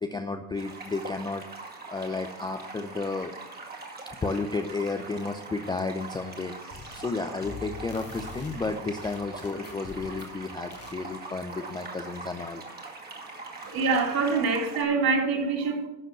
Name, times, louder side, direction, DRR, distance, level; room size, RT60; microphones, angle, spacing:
voice 1, 0.0-1.4 1.9-3.3 4.1-12.6, left 3 dB, 10° left, 5 dB, 0.4 m, -32 dB
sound 1, 0.5-14.8, right 3 dB, 20° right, 2.1 m, -42 dB
sound 2, 6.7-7.1 7.4-10.4 10.7-11.0, left 5 dB, 30° left, 1.4 m, -44 dB
voice 2, 13.6-15.9, right 4 dB, 45° right, 1 dB, 2.9 m, -25 dB
12.0 x 5.1 x 7.8 m, 0.91 s
supercardioid pair, 105°, 49 cm